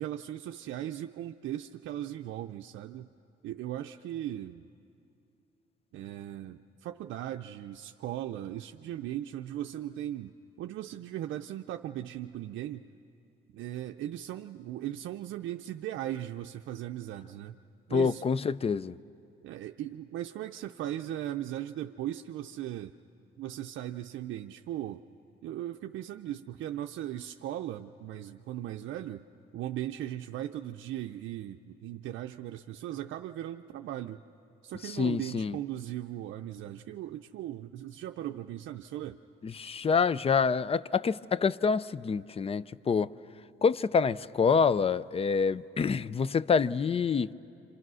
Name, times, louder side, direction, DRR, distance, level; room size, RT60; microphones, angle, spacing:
voice 1, 0.0-3.1 3.4-4.7 5.9-12.9 13.5-17.6 17.9-18.2 19.4-22.9 23.4-25.0 25.4-29.3 29.5-34.2 34.6-39.2, right 12 dB, 75° right, 0.5 m, -38 dB
voice 2, 17.9-19.0 34.8-35.6 39.4-43.1 43.6-47.3, left 5 dB, 30° left, 0.5 m, -27 dB
28.0 x 27.0 x 6.2 m
cardioid pair, 90°, 20 cm